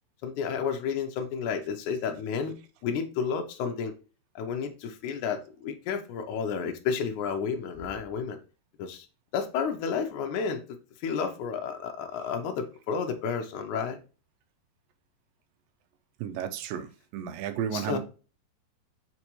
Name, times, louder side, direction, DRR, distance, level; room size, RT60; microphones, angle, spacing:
voice 1, 0.2-2.6 2.8-3.9 4.3-8.4 8.8-9.1 9.3-10.6 11.0-14.0 17.7-18.0, left 6 dB, 85° left, 1.7 m, -31 dB
voice 2, 16.2-16.9 17.1-18.0, right 9 dB, 80° right, 2.2 m, -32 dB
7.1 x 4.5 x 3.0 m
omnidirectional pair, 4.6 m